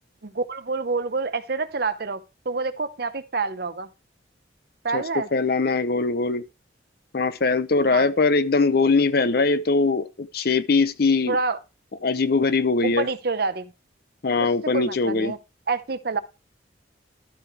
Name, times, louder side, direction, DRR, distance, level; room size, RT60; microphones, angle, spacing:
voice 1, 0.2-3.9 4.8-5.3 7.9-8.0 11.3-11.6 12.8-13.7 14.4-14.5 14.7-15.4 15.7-16.2, right 4 dB, 50° right, 0.8 m, -27 dB
voice 2, 4.9-6.4 7.1-11.4 12.0-13.1 14.2-15.3, left 3 dB, 50° left, 0.6 m, -21 dB
12.5 x 4.9 x 4.5 m
head